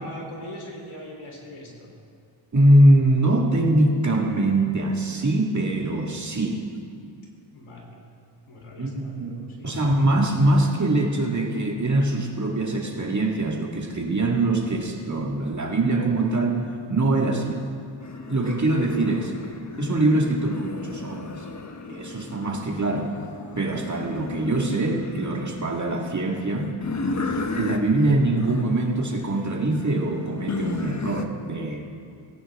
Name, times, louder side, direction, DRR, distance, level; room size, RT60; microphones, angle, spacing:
voice 1, 0.0-1.9 7.5-8.0 8.5-9.7, equal, 80° left, -1 dB, 3.9 m, -41 dB
voice 2, 2.5-6.6 8.8-9.3 9.6-16.6 16.9-17.6 18.3-19.3 19.8-21.5 21.9-23.1 23.6-26.7 27.6-31.9, right 1 dB, 35° right, 0 dB, 2.1 m, -23 dB
sound 1, 18.0-31.2, left 3 dB, 35° left, 1.1 m, -34 dB
18.5 x 17.0 x 3.7 m, 2.3 s
wide cardioid pair, 105°, 48 cm